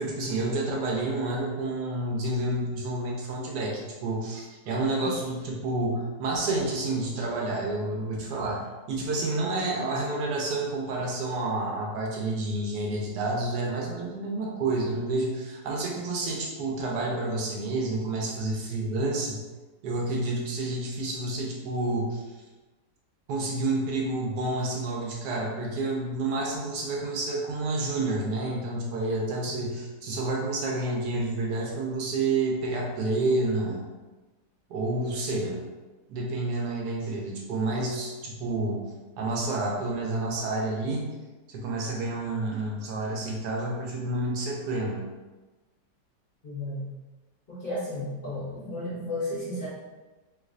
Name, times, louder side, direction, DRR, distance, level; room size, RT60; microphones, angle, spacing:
voice 1, 0.0-19.4 19.8-22.2 23.3-33.8 34.7-35.6 36.1-38.8 39.2-41.1 41.5-45.1, right 2 dB, 75° right, -2 dB, 1.3 m, -29 dB
voice 2, 46.4-46.8 47.5-49.7, left 1 dB, 40° left, -8 dB, 0.8 m, -33 dB
3.2 x 3.0 x 2.4 m, 1.2 s
omnidirectional pair, 1.8 m